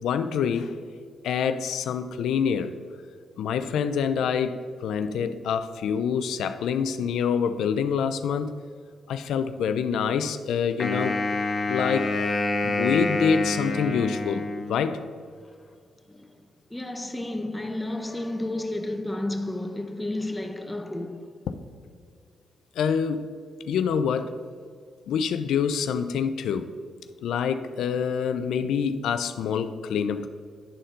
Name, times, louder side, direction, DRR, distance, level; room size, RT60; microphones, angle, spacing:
voice 1, 0.0-0.8 1.2-2.7 3.4-8.5 9.1-11.2 11.7-12.1 12.6-15.0 21.5-21.6 22.8-23.3 23.6-24.4 25.1-26.7 27.2-30.3, left 7 dB, 80° left, 0.3 m, -26 dB
Wind instrument woodwind instrument, 10.8-15.1, left 2 dB, 40° left, 1.2 m, -27 dB
voice 2, 16.7-21.4, left 1 dB, 15° left, 0.7 m, -32 dB
11.0 x 4.2 x 3.8 m
cardioid pair, 65°, 0 cm